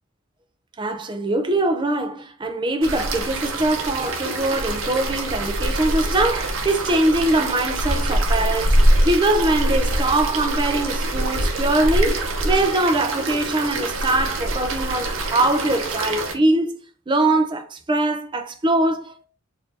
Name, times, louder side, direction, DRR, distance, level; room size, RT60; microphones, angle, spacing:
voice 1, 0.8-16.8 17.1-19.3, right 2 dB, 20° right, 0.4 m, -22 dB
sound 1, 2.8-16.3, right 1 dB, 65° right, 0.7 m, -24 dB
4.5 x 2.6 x 2.7 m
head